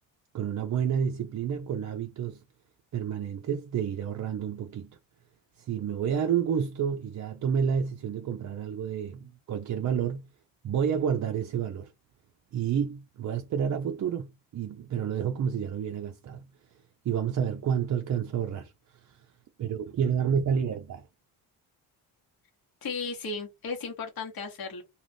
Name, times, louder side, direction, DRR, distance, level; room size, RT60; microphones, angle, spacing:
voice 1, 0.3-2.4 2.9-4.9 5.6-10.3 10.6-11.9 12.5-16.5 17.0-18.7 19.1-19.2 19.6-21.1, right 7 dB, 40° right, 0.5 m, -29 dB
voice 2, 22.8-24.8, left 4 dB, 45° left, 1.0 m, -35 dB
2.4 x 2.4 x 3.4 m
supercardioid pair, 50°, 48 cm